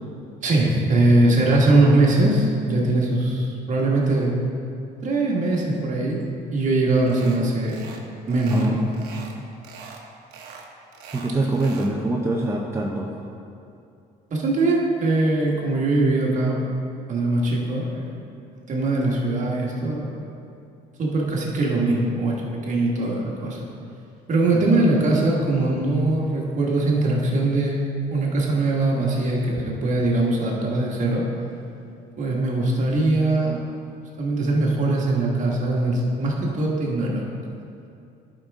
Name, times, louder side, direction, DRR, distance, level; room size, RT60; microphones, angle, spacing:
voice 1, 0.4-4.3 5.0-6.2 6.5-7.8 8.3-8.8 14.3-16.6 17.1-18.1 18.5-20.5 21.0-22.4 22.6-23.7 24.3-27.8 28.1-31.2 32.2-33.6 34.2-37.2, right 2 dB, 45° right, -3 dB, 1.7 m, -21 dB
voice 2, 1.5-2.0 8.5-8.8 9.1-9.4 11.1-13.1 24.5-24.7, right 2 dB, 15° right, -2 dB, 0.7 m, -25 dB
sound 1, 7.1-7.4 7.7-8.0 8.3-9.4 9.6-10.0 10.3-11.9, right 5 dB, 75° right, 1.0 m, -42 dB
11.5 x 5.2 x 3.6 m, 2.6 s
cardioid pair, 110°, 17 cm